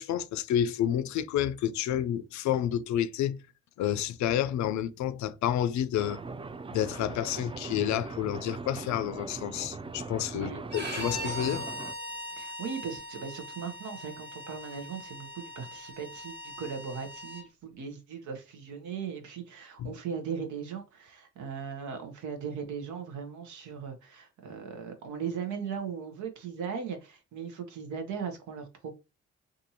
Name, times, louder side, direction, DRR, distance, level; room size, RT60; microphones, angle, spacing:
voice 1, 0.0-3.4 3.8-6.2 6.7-11.7 19.8-19.9, left 10 dB, 75° left, 0.4 m, -29 dB
sound 1, 6.0-11.9, right 4 dB, 20° right, 0.3 m, -40 dB
Bowed string instrument, 10.7-17.4, equal, 35° right, 1.3 m, -40 dB
voice 2, 12.4-28.9, right 6 dB, 80° right, 0.7 m, -38 dB
2.6 x 2.5 x 2.7 m
supercardioid pair, 55°, 29 cm